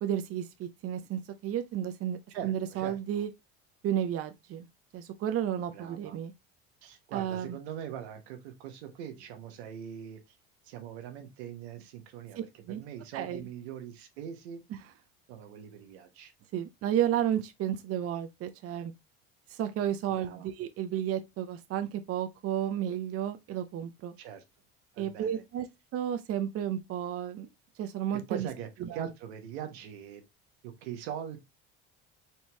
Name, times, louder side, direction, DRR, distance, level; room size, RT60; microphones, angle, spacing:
voice 1, 0.0-2.2 2.4-3.3 3.8-4.7 4.9-6.3 7.1-7.6 12.7-12.8 13.1-13.5 16.5-18.9 19.5-24.1 25.0-25.7 25.9-27.5 27.8-28.5 28.8-29.0, right 10 dB, 45° right, 0.7 m, -32 dB
voice 2, 2.3-3.2 5.7-6.2 6.8-10.2 10.6-14.6 15.3-16.3 20.1-20.5 24.2-24.4 24.9-25.4 28.3-30.2 30.6-31.4, right 9 dB, 85° right, 1.1 m, -42 dB
4.5 x 2.9 x 3.3 m
supercardioid pair, 95°, 32 cm